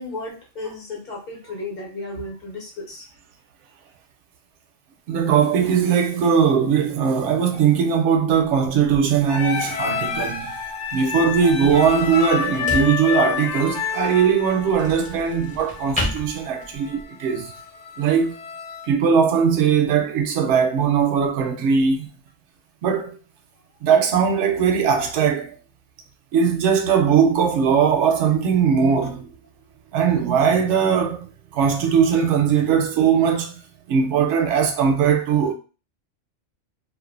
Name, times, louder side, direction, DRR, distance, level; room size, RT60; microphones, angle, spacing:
voice 1, 0.0-3.0, left 2 dB, 40° left, 0.9 m, -34 dB
voice 2, 5.1-10.5 10.9-17.5 18.0-18.4 18.9-22.1 22.8-23.1 23.8-25.5 26.3-29.3 29.9-31.3 31.5-33.5 33.9-35.5, right 7 dB, 75° right, 0.9 m, -19 dB
sound 1, 8.3-17.0, equal, 10° left, 0.5 m, -35 dB
sound 2, 9.3-18.9, left 6 dB, 80° left, 1.0 m, -29 dB
2.5 x 2.3 x 2.4 m
omnidirectional pair, 1.2 m